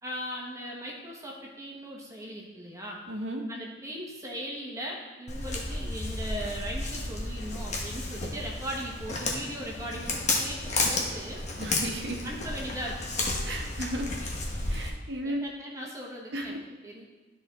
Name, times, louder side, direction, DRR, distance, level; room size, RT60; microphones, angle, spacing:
voice 1, 0.0-3.0 3.5-11.4 12.2-13.1 15.2-17.1, equal, 15° right, -2 dB, 1.1 m, -39 dB
voice 2, 3.1-3.4 11.6-12.2 13.4-14.1 14.7-15.4 16.3-16.6, right 1 dB, 70° right, 2 dB, 1.1 m, -34 dB
Walk footsteps, 5.3-14.9, left 2 dB, 40° left, 1.2 m, -32 dB
12.0 x 4.3 x 3.6 m, 1.2 s
head